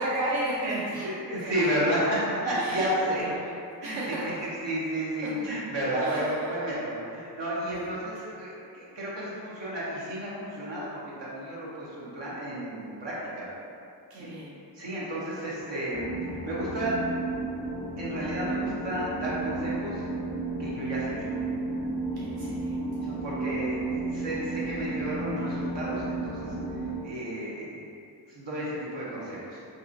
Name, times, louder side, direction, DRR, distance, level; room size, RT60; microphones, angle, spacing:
voice 1, 0.0-1.8 2.5-2.9 3.2-3.6 3.8-4.2 5.4-5.5 6.0-6.5 7.7-8.1 14.1-14.5 22.1-22.8, right 1 dB, 60° right, -7 dB, 0.5 m, -34 dB
voice 2, 0.6-3.2 3.8-4.0 4.6-13.5 14.1-14.4 14.7-16.1 16.4-17.0 18.0-20.0 20.6-21.3 22.2-22.3 23.0-26.5 27.0-27.8 28.3-29.6, right 1 dB, 80° right, -8 dB, 0.9 m, -32 dB
sound 1, 15.9-27.0, right 2 dB, 20° right, 0.6 m, -33 dB
2.7 x 2.5 x 2.5 m, 2.5 s
cardioid pair, 65°, 43 cm